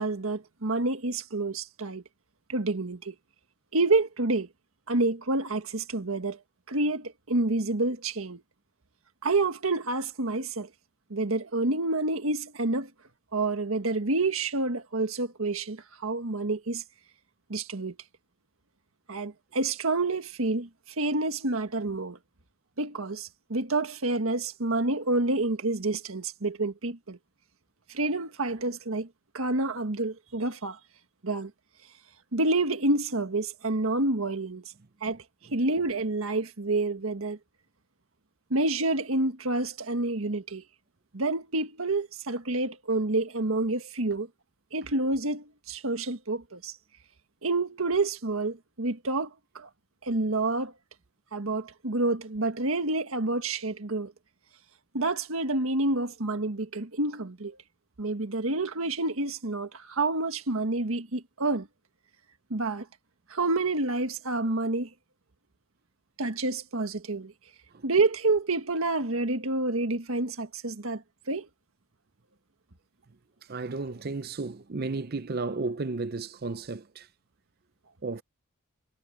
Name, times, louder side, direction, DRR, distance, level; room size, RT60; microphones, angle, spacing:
voice 1, 0.0-2.0 2.5-3.1 3.7-4.5 4.9-6.4 6.7-8.4 9.2-10.7 11.1-12.9 13.3-16.8 17.5-17.9 19.1-20.7 21.0-22.2 22.8-27.2 27.9-29.1 29.3-30.8 31.2-31.5 32.3-34.6 35.0-35.2 35.5-37.4 38.5-40.6 41.1-44.3 44.7-46.7 47.4-49.7 50.0-50.7 51.3-54.1 54.9-57.6 58.0-61.7 62.5-62.9 63.3-64.9 66.2-67.3 67.8-71.0 71.3-71.5, right 2 dB, 80° right, 1.6 m, -28 dB
voice 2, 73.5-77.1 78.0-78.2, right 3 dB, 45° right, 0.6 m, -33 dB
head